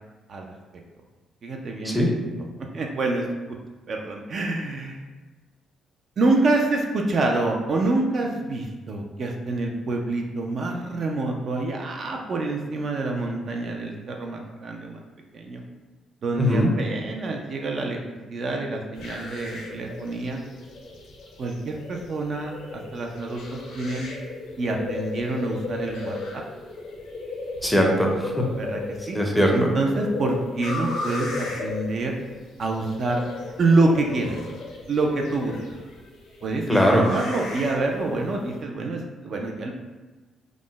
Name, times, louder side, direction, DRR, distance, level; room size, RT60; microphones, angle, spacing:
voice 1, 1.4-2.1 2.7-3.3 3.9-5.0 6.2-15.0 15.3-15.6 16.2-20.4 21.4-24.1 24.6-26.4 28.6-28.8 29.1-29.2 29.5-32.1 32.6-33.2 33.6-34.4 34.9-35.5 36.4-39.7, right 2 dB, 50° right, 1 dB, 0.4 m, -26 dB
voice 2, 16.4-16.7 27.6-28.4 29.1-29.5 36.7-37.0, equal, 5° left, 0 dB, 0.5 m, -20 dB
sound 1, 18.9-38.6, left 3 dB, 85° left, 0.6 m, -35 dB
2.3 x 2.0 x 3.7 m, 1.2 s
cardioid pair, 90°, 0 cm